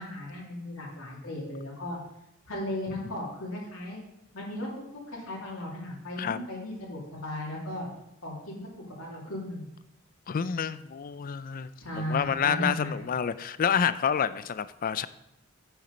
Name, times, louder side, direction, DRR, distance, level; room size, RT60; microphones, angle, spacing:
voice 1, 0.0-2.0 2.5-4.0 4.3-4.7 5.1-7.9 8.2-8.7 9.0-9.7 11.8-13.0, left 1 dB, 75° left, -4 dB, 2.6 m, -36 dB
voice 2, 10.3-15.1, left 7 dB, 40° left, 15 dB, 0.4 m, -28 dB
8.3 x 7.1 x 5.1 m, 0.85 s
head